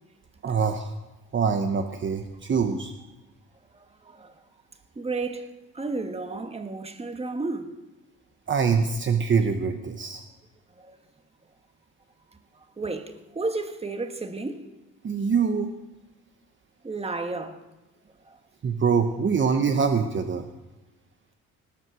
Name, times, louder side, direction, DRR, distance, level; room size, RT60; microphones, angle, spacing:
voice 1, 0.4-0.9 1.3-2.9 8.5-10.2 15.0-15.7 18.6-20.5, right 5 dB, 40° right, 1.1 m, -24 dB
voice 2, 3.7-4.3 4.9-7.7 10.8-11.0 12.8-14.6 16.8-17.6 18.3-18.4, right 3 dB, 20° right, 1.6 m, -32 dB
19.5 x 7.9 x 6.3 m
cardioid pair, 90°, 30 cm